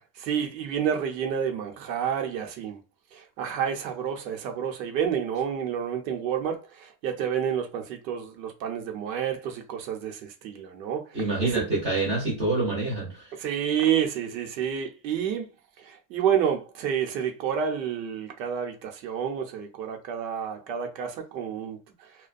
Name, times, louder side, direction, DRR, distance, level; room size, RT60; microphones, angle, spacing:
voice 1, 0.1-2.8 3.1-11.6 13.4-15.5 15.8-22.1, right 8 dB, 85° right, 0.9 m, -29 dB
voice 2, 11.1-13.3, right 2 dB, 15° right, 0.5 m, -26 dB
2.4 x 2.2 x 2.5 m
supercardioid pair, 180°, 49 cm